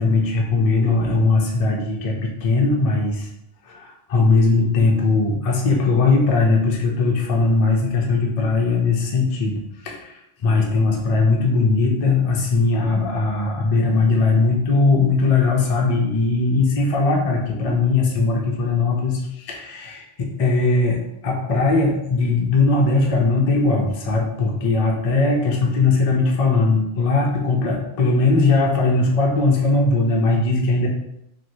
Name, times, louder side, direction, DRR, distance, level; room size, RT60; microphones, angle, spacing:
voice 1, 0.0-3.3 3.7-30.9, left 3 dB, 45° left, -1 dB, 0.5 m, -19 dB
3.0 x 2.8 x 2.6 m, 0.80 s
omnidirectional pair, 1.1 m